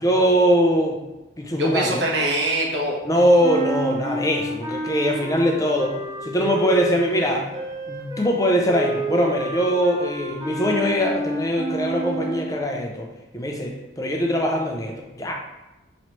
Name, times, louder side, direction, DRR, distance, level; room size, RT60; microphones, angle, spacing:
voice 1, 0.0-1.0 1.4-2.0 3.0-5.9 6.2-7.5 7.9-13.1 13.3-15.3, equal, 20° left, 1 dB, 0.5 m, -21 dB
voice 2, 1.5-3.0, right 1 dB, 75° right, -2 dB, 1.1 m, -23 dB
sound 1, 3.4-12.6, right 2 dB, 20° right, 0.9 m, -30 dB
5.6 x 3.1 x 3.0 m, 1.0 s
head